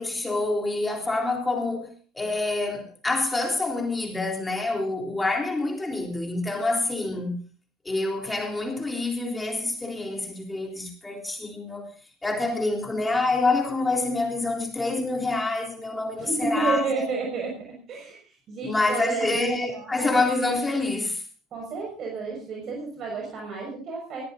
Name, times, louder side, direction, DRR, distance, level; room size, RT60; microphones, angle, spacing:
voice 1, 0.0-7.4 7.8-11.9 12.2-17.1 18.6-21.3, left 2 dB, 15° left, 3.6 m, -27 dB
voice 2, 16.2-20.2 21.5-24.2, right 4 dB, 45° right, 5.9 m, -31 dB
22.0 x 14.5 x 2.7 m
hypercardioid pair, 80°, 0 cm